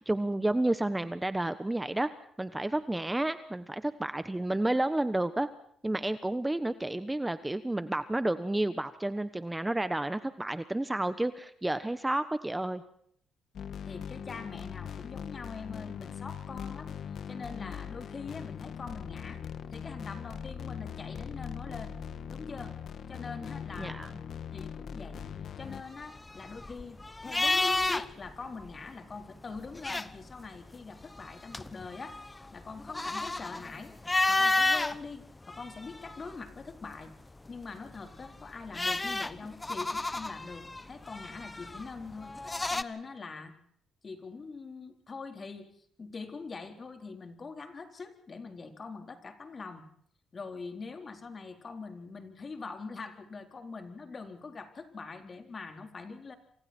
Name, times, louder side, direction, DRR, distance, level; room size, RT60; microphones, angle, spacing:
voice 1, 0.0-2.1 2.4-5.5 5.8-12.8 23.8-24.1, right 1 dB, 10° right, 12 dB, 1.2 m, -31 dB
sound 1, 13.6-25.8, left 8 dB, 60° left, 1.6 m, -41 dB
voice 2, 13.8-16.9 17.3-19.4 19.7-21.9 22.3-22.8 23.1-24.0 24.5-25.2 25.6-32.2 32.5-33.9 34.3-37.1 37.5-42.3 42.7-43.5 44.0-45.7 46.0-49.8 50.3-56.4, left 4 dB, 35° left, 5 dB, 4.3 m, -43 dB
sound 2, 25.8-28.3 28.6-28.7 29.6-30.5 31.0-35.0 35.5-36.5 38.0-42.8, left 2 dB, 15° left, 1.0 m, -31 dB
28.0 x 26.0 x 4.5 m, 0.64 s
cardioid pair, 90°, 0 cm